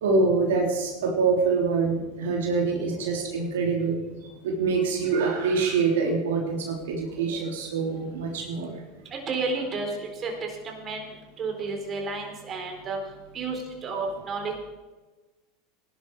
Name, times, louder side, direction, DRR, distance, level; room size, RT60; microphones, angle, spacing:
voice 1, 0.0-4.0 4.4-8.7, right 4 dB, 80° right, 0 dB, 3.4 m, -25 dB
voice 2, 9.1-11.1 11.4-13.0 13.3-14.5, right 3 dB, 35° right, 2 dB, 4.1 m, -31 dB
18.0 x 11.5 x 4.8 m, 1.2 s
hypercardioid pair, 95°, 0 cm